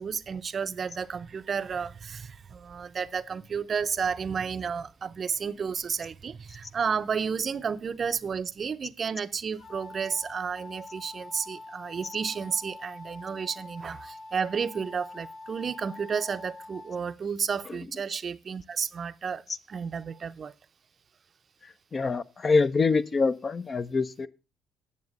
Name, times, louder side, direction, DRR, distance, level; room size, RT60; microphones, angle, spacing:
voice 1, 0.0-20.5, right 6 dB, 45° right, 0.6 m, -32 dB
sound 1, 9.5-17.1, left 2 dB, 65° left, 6.2 m, -45 dB
voice 2, 21.9-24.3, left 4 dB, 40° left, 0.7 m, -25 dB
9.6 x 6.9 x 6.5 m
supercardioid pair, 65°, 0 cm